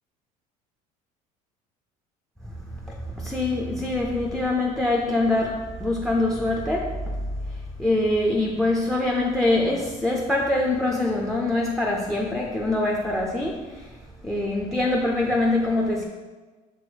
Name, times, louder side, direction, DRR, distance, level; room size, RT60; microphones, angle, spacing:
voice 1, 2.4-7.0 7.5-14.0 14.2-16.0, left 2 dB, ahead, 1 dB, 0.3 m, -24 dB
6.1 x 3.3 x 4.8 m, 1.3 s
cardioid pair, 165°, 16 cm